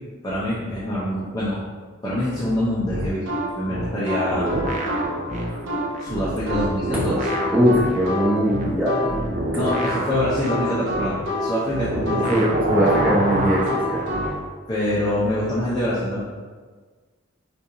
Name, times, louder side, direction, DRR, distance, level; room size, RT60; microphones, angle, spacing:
voice 1, 0.2-1.6 2.0-3.2 3.5-4.5 6.0-7.3 9.5-12.3 14.7-16.2, left 1 dB, 20° left, -8 dB, 0.6 m, -25 dB
sound 1, 2.9-14.3, left 1 dB, 70° right, 0.7 m, -27 dB
sound 2, 4.3-6.6 6.8-14.4, right 1 dB, 40° right, 0.4 m, -28 dB
voice 2, 7.5-9.7 12.3-14.0, equal, 5° right, -9 dB, 0.9 m, -21 dB
4.4 x 2.5 x 2.7 m, 1.4 s
head